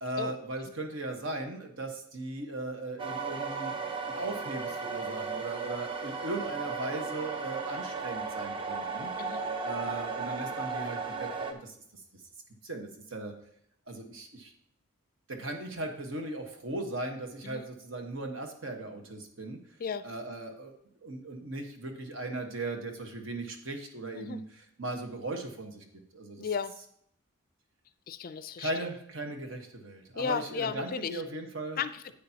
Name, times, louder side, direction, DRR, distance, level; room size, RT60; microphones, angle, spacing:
voice 1, 0.0-3.7 4.1-9.1 9.6-11.7 12.6-13.3 13.9-14.5 15.3-19.6 20.0-20.7 21.0-25.8 26.1-26.5 28.6-31.8, right 2 dB, 65° right, 4 dB, 1.4 m, -38 dB
sound 1, 3.0-11.5, right 4 dB, 25° right, 0.6 m, -35 dB
voice 2, 26.4-26.8 28.1-28.7 30.1-31.2 31.8-32.1, left 6 dB, 45° left, 14 dB, 0.4 m, -34 dB
10.0 x 8.4 x 2.8 m, 0.69 s
head